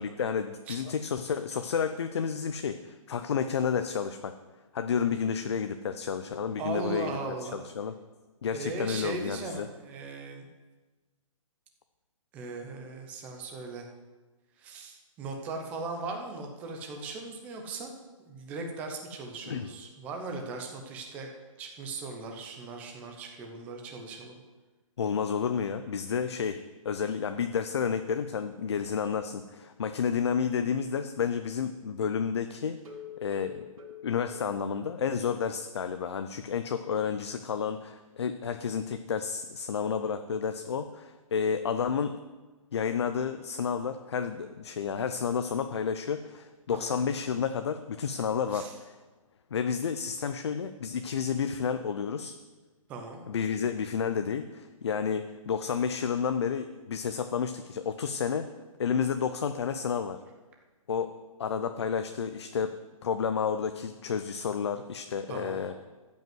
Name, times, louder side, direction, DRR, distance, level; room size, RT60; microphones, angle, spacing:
voice 1, 0.0-4.3 4.7-7.9 8.4-9.7 19.5-19.7 25.0-26.6 26.8-32.8 33.2-33.7 34.0-42.2 42.7-48.9 49.5-52.3 53.3-58.5 58.8-60.2 60.9-61.1 61.4-62.7 63.0-65.7, left 6 dB, 50° left, 8 dB, 0.6 m, -31 dB
voice 2, 6.6-7.6 8.5-10.5 12.3-13.9 14.6-17.9 18.2-21.3 21.6-24.4 46.7-47.0 48.5-48.7 52.9-53.2 65.3-65.6, right 3 dB, 10° right, 3 dB, 0.7 m, -38 dB
sound 1, 32.8-35.3 35.6-35.7 36.1-36.2 36.6-36.7, left 7 dB, 70° right, 3.7 m, -46 dB
13.5 x 5.5 x 7.8 m, 1.2 s
hypercardioid pair, 175°, 18 cm